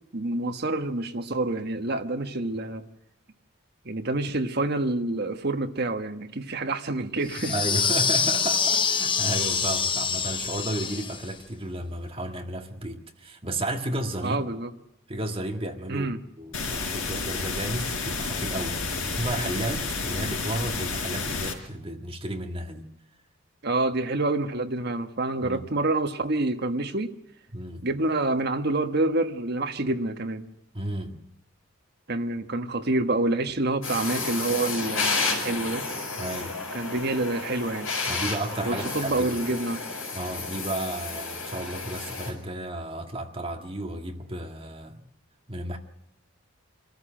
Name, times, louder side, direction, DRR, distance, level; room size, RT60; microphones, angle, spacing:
voice 1, 0.1-2.8 3.8-7.5 14.2-14.7 15.9-16.2 23.6-27.1 27.8-30.4 32.1-35.9 36.7-37.9 38.7-39.8, right 2 dB, 50° right, 1.4 m, -27 dB
sound 1, 7.3-11.3, left 6 dB, 25° left, 0.8 m, -25 dB
voice 2, 7.4-14.4 15.1-16.1 16.4-22.8 25.4-25.6 27.5-27.8 30.7-31.2 36.2-36.6 38.0-39.4 40.1-45.1 45.5-45.8, right 1 dB, 25° right, 1.8 m, -33 dB
sound 2, 16.5-21.5, left 4 dB, 85° left, 4.4 m, -30 dB
sound 3, 33.8-42.3, left 3 dB, 70° left, 6.5 m, -31 dB
25.5 x 14.0 x 9.1 m
head